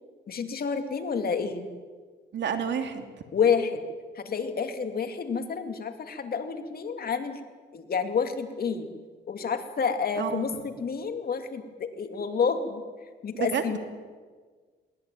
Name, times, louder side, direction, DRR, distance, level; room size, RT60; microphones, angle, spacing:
voice 1, 0.3-1.7 3.3-3.8 4.1-7.4 7.7-8.9 9.3-12.8 13.2-13.8, left 6 dB, 50° left, 6 dB, 2.6 m, -29 dB
voice 2, 2.3-3.1 10.2-10.6 13.3-13.8, right 7 dB, 65° right, 6 dB, 2.8 m, -30 dB
22.0 x 19.5 x 9.1 m, 1.5 s
cardioid pair, 90°, 20 cm